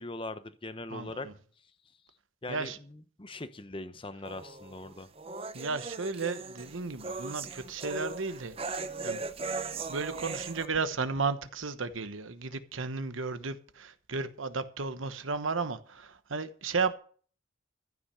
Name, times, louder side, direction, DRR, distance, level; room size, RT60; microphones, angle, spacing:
voice 1, 0.0-1.3 2.4-5.1, left 2 dB, 25° left, 0.9 m, -41 dB
voice 2, 0.9-1.3 2.5-2.8 5.5-9.2 9.9-16.9, right 4 dB, 80° right, 1.1 m, -34 dB
sound 1, 4.3-10.7, right 3 dB, 30° right, 0.7 m, -38 dB
14.5 x 6.1 x 6.9 m
head